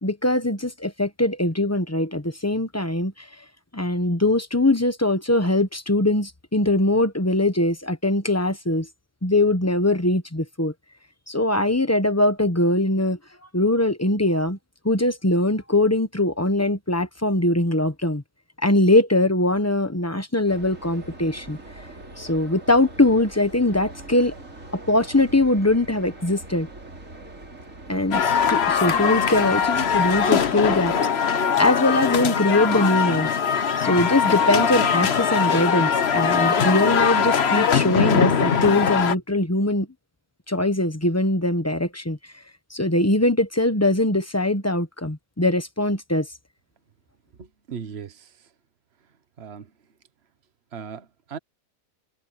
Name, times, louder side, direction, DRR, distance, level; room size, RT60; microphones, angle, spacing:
voice 1, 0.0-3.1 3.7-8.9 9.2-10.7 11.3-13.2 13.5-14.6 14.8-18.2 18.6-21.6 22.2-24.3 24.7-26.7 27.9-33.3 33.8-39.9 40.5-42.2 42.7-46.3, left 1 dB, 10° left, 1.1 m, -22 dB
sound 1, 20.5-31.0, right 2 dB, 65° right, 4.8 m, -42 dB
sound 2, 28.1-39.2, left 7 dB, 50° left, 1.2 m, -21 dB
voice 2, 47.4-48.3 49.4-49.7 50.7-51.4, right 7 dB, 50° right, 1.4 m, -37 dB
omnidirectional pair, 1.4 m